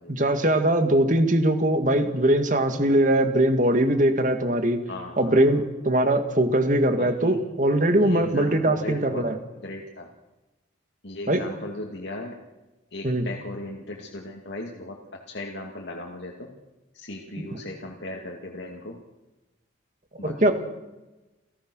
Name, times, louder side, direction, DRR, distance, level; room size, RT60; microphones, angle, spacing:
voice 1, 0.1-4.8 5.2-9.4 11.3-11.4 13.0-13.3 20.2-20.5, right 1 dB, 40° right, 7 dB, 2.2 m, -21 dB
voice 2, 4.9-5.6 6.9-7.4 8.0-9.2 9.6-10.1 11.0-12.4 12.9-16.5 16.9-19.0 20.2-20.5, left 1 dB, 65° left, 0 dB, 2.5 m, -37 dB
30.0 x 16.5 x 6.4 m, 1.1 s
head